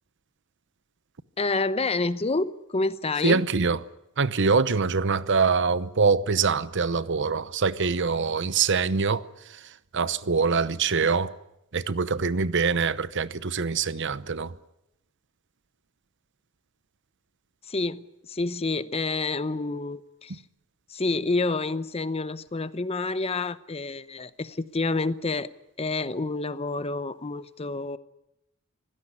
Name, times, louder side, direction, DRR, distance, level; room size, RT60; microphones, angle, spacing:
voice 1, 1.4-3.4 17.7-20.4 20.9-25.5 25.8-28.0, left 3 dB, 30° left, 0.8 m, -28 dB
voice 2, 3.2-3.8 4.2-11.3 11.7-14.5, right 5 dB, 60° right, 0.9 m, -24 dB
25.5 x 16.5 x 9.9 m
head